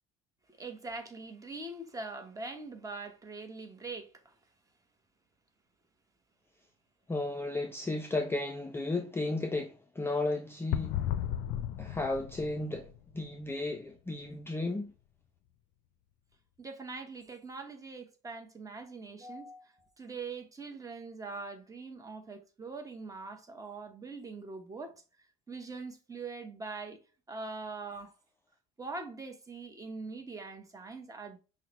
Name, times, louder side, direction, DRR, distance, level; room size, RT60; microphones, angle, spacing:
voice 1, 0.6-4.3 16.6-25.0 25.5-27.0 27.3-28.1 28.8-31.4, right 3 dB, 20° right, 1.0 m, -43 dB
voice 2, 7.1-11.0 11.8-14.9, left 2 dB, 15° left, 0.4 m, -34 dB
sound 1, 10.7-13.4, left 11 dB, 70° left, 0.4 m, -35 dB
5.6 x 2.2 x 3.0 m
supercardioid pair, 100°, 19 cm